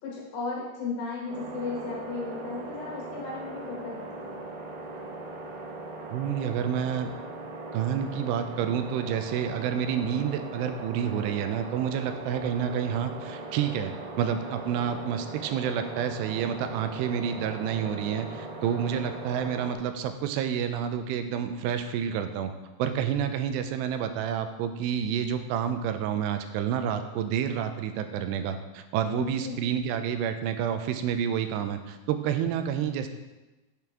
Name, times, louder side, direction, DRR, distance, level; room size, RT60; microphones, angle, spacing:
voice 1, 0.0-4.3 29.2-29.6, left 4 dB, 75° left, -3 dB, 3.5 m, -35 dB
sound 1, 1.3-19.7, right 2 dB, 70° right, 2.6 m, -39 dB
voice 2, 6.1-7.1 7.7-22.5 22.8-33.1, right 8 dB, 90° right, 8 dB, 2.7 m, -29 dB
8.6 x 7.8 x 3.6 m, 1.1 s
omnidirectional pair, 4.8 m